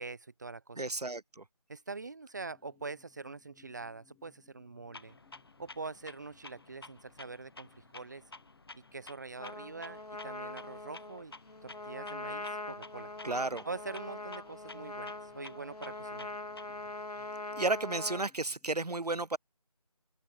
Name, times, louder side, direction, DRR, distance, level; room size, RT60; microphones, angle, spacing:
voice 1, 0.0-0.8 1.7-5.1 5.6-8.3 8.7-11.3 11.6-13.1 13.6-16.3, right 3 dB, 30° right, 2.2 m, -44 dB
voice 2, 0.8-1.4 13.2-13.6 17.6-19.4, right 2 dB, 85° right, 1.0 m, -33 dB
sound 1, 2.4-18.7, left 13 dB, 5° left, 4.6 m, -70 dB
Clock, 4.9-16.9, left 3 dB, 40° left, 2.6 m, -53 dB
Trumpet, 9.4-18.3, left 2 dB, 80° left, 1.7 m, -42 dB
open air
figure-of-eight pair, 170°, 20 cm